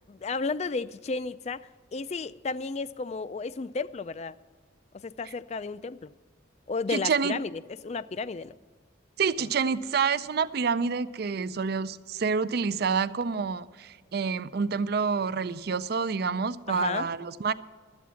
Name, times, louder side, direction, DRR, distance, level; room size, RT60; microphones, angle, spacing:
voice 1, 0.1-4.4 4.9-6.1 6.7-8.6 16.7-17.1, left 4 dB, 35° left, 0.3 m, -33 dB
voice 2, 6.9-7.4 9.2-17.5, right 5 dB, 50° right, 0.4 m, -28 dB
12.5 x 8.5 x 7.0 m
head